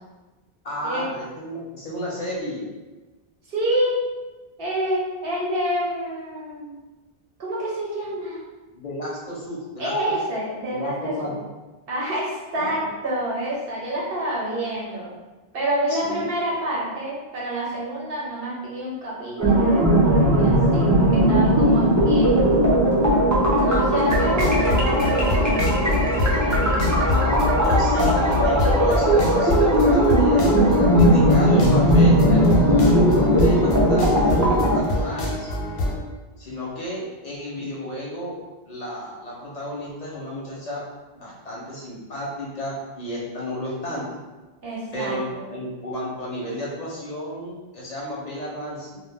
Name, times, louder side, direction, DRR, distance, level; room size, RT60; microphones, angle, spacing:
voice 1, 0.6-2.7 8.7-10.0 10.7-11.3 12.6-12.9 15.9-16.3 27.0-30.5 30.9-35.5 36.4-38.3 38.6-40.8 41.1-44.0 44.9-49.0, left 1 dB, 50° left, -5 dB, 0.6 m, -32 dB
voice 2, 3.5-4.0 4.6-6.8 7.4-8.4 9.8-11.4 11.9-15.1 15.5-22.3 23.5-27.0 44.6-45.5, right 1 dB, 65° right, -6 dB, 0.8 m, -28 dB
sound 1, 19.4-34.8, equal, 30° right, 0.3 m, -18 dB
sound 2, 23.9-35.9, left 2 dB, 85° left, 0.9 m, -26 dB
2.1 x 2.1 x 3.2 m, 1.2 s
omnidirectional pair, 1.1 m